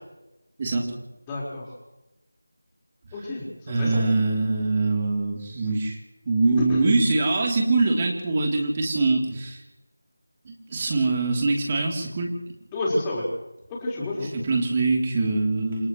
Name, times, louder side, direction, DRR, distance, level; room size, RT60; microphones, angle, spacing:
voice 1, 0.6-0.9 3.7-6.0 6.2-9.6 10.4-12.3 14.3-15.9, right 3 dB, 25° right, 0 dB, 3.4 m, -23 dB
voice 2, 1.3-1.7 3.1-4.1 6.7-6.9 12.7-13.2 13.7-14.3, left 1 dB, 10° left, -5 dB, 4.7 m, -29 dB
29.5 x 28.0 x 3.2 m, 1.0 s
figure-of-eight pair, 170°, 0 cm